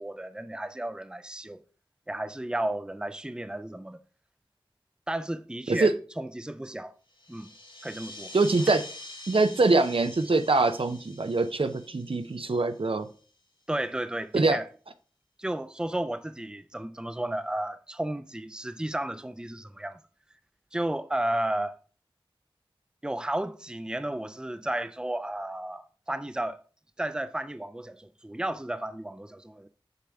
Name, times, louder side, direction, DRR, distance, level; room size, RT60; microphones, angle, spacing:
voice 1, 0.0-1.6 2.1-4.0 5.1-5.9 6.2-6.9 7.3-7.5 7.8-8.3 13.7-14.7 15.4-20.0 20.7-21.8 23.0-26.6 27.0-29.7, right 1 dB, 10° right, 0.4 m, -33 dB
sound 1, 7.1-13.2, left 2 dB, 65° left, 2.3 m, -46 dB
voice 2, 8.3-8.8 9.3-13.1 14.3-14.6, right 3 dB, 80° right, 0.6 m, -24 dB
6.7 x 6.2 x 3.5 m
wide cardioid pair, 45°, 9 cm